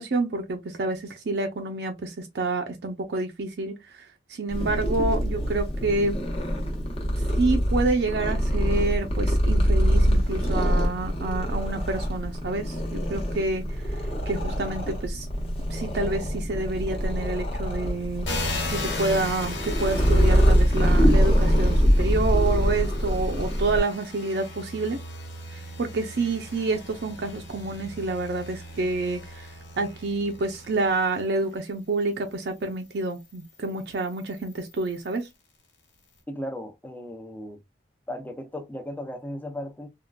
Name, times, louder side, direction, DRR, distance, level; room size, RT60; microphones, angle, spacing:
voice 1, 0.0-6.2 7.4-13.6 14.3-15.3 15.7-25.0 25.5-29.5 29.8-35.3, right 3 dB, 65° right, 0.5 m, -28 dB
Purr, 4.5-23.8, equal, 30° left, 0.8 m, -24 dB
sound 1, 18.2-31.6 32.3-35.3, left 2 dB, 90° left, 1.4 m, -38 dB
voice 2, 36.3-37.6 38.1-39.9, left 1 dB, 10° left, 0.5 m, -36 dB
3.5 x 2.3 x 2.3 m
head